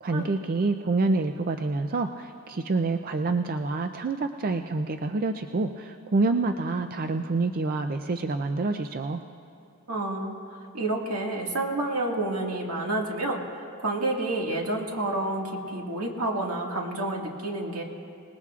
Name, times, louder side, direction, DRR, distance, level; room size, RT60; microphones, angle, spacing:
voice 1, 0.0-9.2, right 3 dB, 40° right, 7 dB, 0.4 m, -27 dB
voice 2, 9.9-13.4 13.8-17.8, right 2 dB, 80° right, 0 dB, 1.9 m, -29 dB
25.5 x 19.5 x 2.4 m, 2.5 s
head